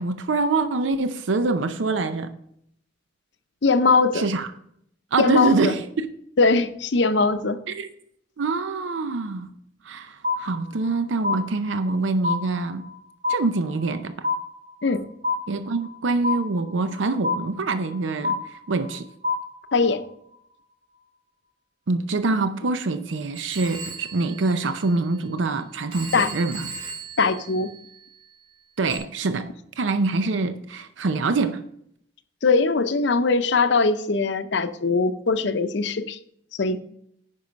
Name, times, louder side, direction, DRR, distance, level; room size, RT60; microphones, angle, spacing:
voice 1, 0.0-2.3 4.1-4.5 5.1-6.1 7.7-7.9 8.4-9.5 9.8-12.9 13.3-14.3 15.5-19.0 21.9-26.7 28.8-31.7, right 3 dB, 80° right, 0.6 m, -25 dB
voice 2, 3.6-4.2 5.2-5.8 6.4-7.6 14.8-15.1 19.7-20.1 26.1-26.3 27.2-27.7 32.4-36.2 36.5-36.8, left 4 dB, 65° left, 0.6 m, -21 dB
sound 1, 10.2-10.9 11.2-12.0 12.2-13.0 13.2-14.0 14.2-15.0 15.2-16.0 16.2-17.0 17.2-18.0 18.2-19.0 19.2-20.0, left 3 dB, 50° right, 1.9 m, -27 dB
Telephone, 23.3-25.5 25.9-28.2 28.9-29.0, right 4 dB, 30° right, 2.5 m, -38 dB
9.7 x 5.3 x 5.1 m
head